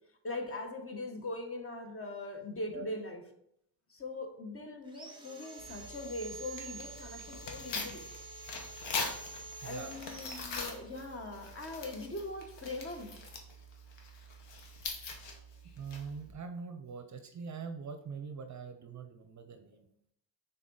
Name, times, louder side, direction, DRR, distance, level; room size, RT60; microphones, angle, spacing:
voice 1, 0.2-3.2 3.9-8.0 9.6-13.1, left 2 dB, 30° left, 4 dB, 1.0 m, -41 dB
Sawing, 4.9-11.3, right 2 dB, 10° right, 1.0 m, -48 dB
Tearing, 5.6-16.3, left 3 dB, 70° left, 1.3 m, -43 dB
voice 2, 9.6-10.1 15.8-19.9, right 5 dB, 40° right, 7 dB, 0.6 m, -43 dB
6.3 x 3.9 x 3.9 m, 0.74 s
cardioid pair, 115°, 45 cm